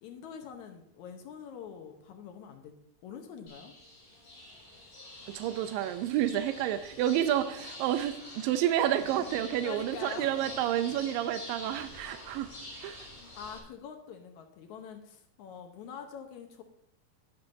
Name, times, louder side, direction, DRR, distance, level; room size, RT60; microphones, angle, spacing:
voice 1, 0.0-2.7 3.0-3.7 9.6-10.3 13.2-16.6, left 7 dB, 70° left, 4 dB, 2.0 m, -45 dB
sound 1, 3.5-13.6, left 2 dB, 30° left, 5.6 m, -46 dB
voice 2, 5.3-12.5 12.8-13.1, right 11 dB, 85° right, 9 dB, 2.3 m, -30 dB
12.5 x 11.0 x 2.7 m, 0.73 s
omnidirectional pair, 4.1 m